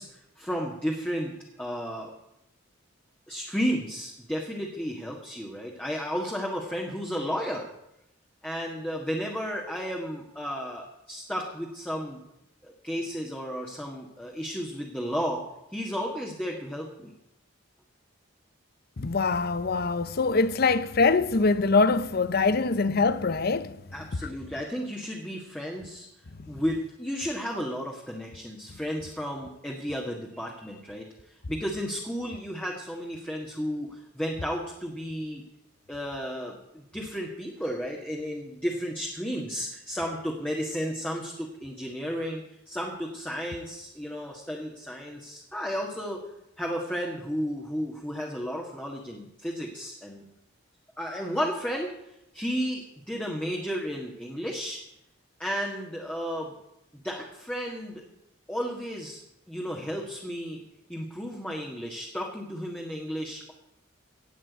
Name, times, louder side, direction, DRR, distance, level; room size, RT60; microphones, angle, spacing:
voice 1, 0.0-2.1 3.3-7.7 8.4-12.2 12.6-15.4 15.7-17.1 23.9-26.1 26.5-35.4 35.9-46.2 46.6-50.2 51.0-51.9 52.3-54.8 55.4-56.5 56.9-58.0 58.5-59.2 59.5-60.6 60.9-63.5, equal, 5° left, 1.7 m, -33 dB
voice 2, 19.0-23.8 24.2-24.3, left 4 dB, 55° left, 0.7 m, -24 dB
17.5 x 6.1 x 8.4 m
head